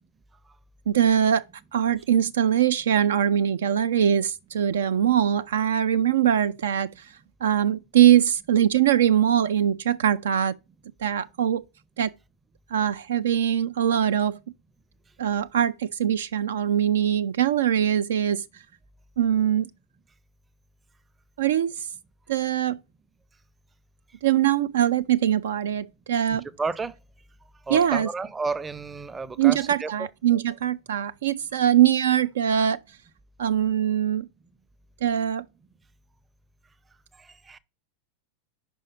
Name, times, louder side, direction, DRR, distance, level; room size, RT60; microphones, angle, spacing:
voice 1, 0.9-1.4 1.7-7.1 7.4-10.5 11.0-11.6 12.0-12.1 12.7-14.4 15.2-18.4 19.2-19.7 21.4-21.9 22.3-22.8 24.2-26.5 27.7-28.1 29.4-32.8 33.4-34.3 35.0-35.4, right 10 dB, 60° right, 0.3 m, -22 dB
voice 2, 26.3-26.9 27.7-30.1 37.2-37.6, right 4 dB, 15° right, 0.6 m, -32 dB
5.4 x 5.3 x 5.3 m
figure-of-eight pair, 90°, 0 cm